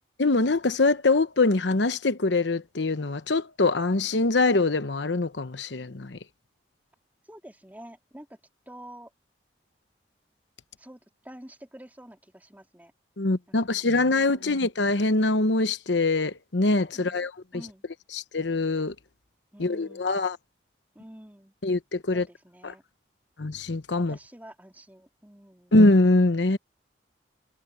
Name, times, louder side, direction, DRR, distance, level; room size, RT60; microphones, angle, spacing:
voice 1, 0.2-6.2 13.2-17.3 18.1-18.9 19.6-20.4 21.6-22.3 22.6-22.7 23.4-24.2 25.7-26.6, left 2 dB, 75° left, 1.0 m, -23 dB
voice 2, 7.3-8.4 8.7-9.1 10.8-12.9 13.5-13.8 14.1-14.6 16.9-17.2 17.5-17.8 19.5-20.2 20.9-21.5 22.1-22.8 24.1-25.7, right 1 dB, 10° right, 3.3 m, -48 dB
head